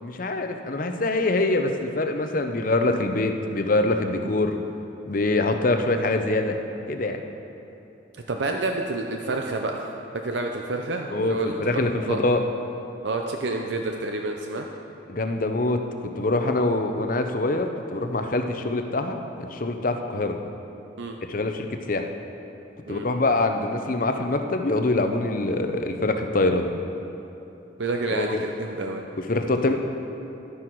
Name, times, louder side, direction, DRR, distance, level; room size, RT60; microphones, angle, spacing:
voice 1, 0.0-4.5 5.1-6.6 6.9-7.2 11.1-12.4 15.1-20.3 21.3-22.1 22.9-26.7 28.1-28.4 29.3-29.7, left 2 dB, 45° left, 6 dB, 0.7 m, -24 dB
voice 2, 8.1-9.9 10.2-11.8 12.1-12.2 13.0-14.7 21.0-21.1 22.9-23.0 27.8-29.0, right 2 dB, 65° right, 2 dB, 0.6 m, -29 dB
12.0 x 9.8 x 4.7 m, 3.0 s
head